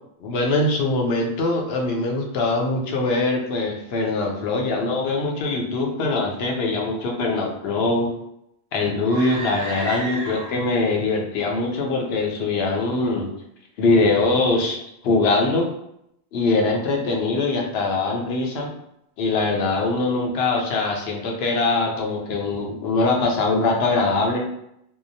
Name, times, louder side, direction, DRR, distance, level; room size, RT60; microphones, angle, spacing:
voice 1, 0.2-8.1 8.7-13.3 13.8-15.7 16.3-18.7 19.2-24.5, left 3 dB, 75° left, 1 dB, 0.8 m, -22 dB
sound 1, 9.0-10.8, right 2 dB, 80° right, 1.0 m, -33 dB
2.7 x 2.0 x 2.6 m, 0.77 s
omnidirectional pair, 1.1 m